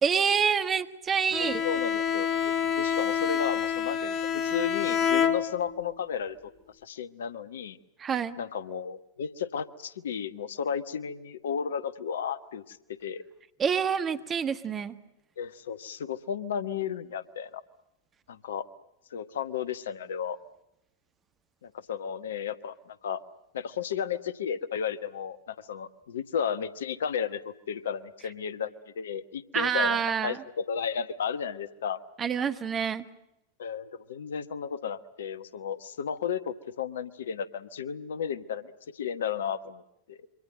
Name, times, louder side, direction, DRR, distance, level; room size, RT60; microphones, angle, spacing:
voice 1, 0.0-1.6 8.0-8.4 13.6-14.9 29.5-30.4 32.2-33.0, right 7 dB, 25° right, 10 dB, 1.5 m, -27 dB
Bowed string instrument, 1.3-5.9, left 8 dB, 35° left, 2.3 m, -27 dB
voice 2, 1.4-2.3 2.8-6.5 6.8-7.8 8.4-13.2 15.4-17.6 18.3-18.7 19.1-20.4 21.6-23.2 23.5-32.0 33.6-39.8 40.1-40.2, left 7 dB, 60° left, 15 dB, 1.1 m, -33 dB
27.0 x 24.5 x 7.7 m, 0.85 s
figure-of-eight pair, 90°, 0 cm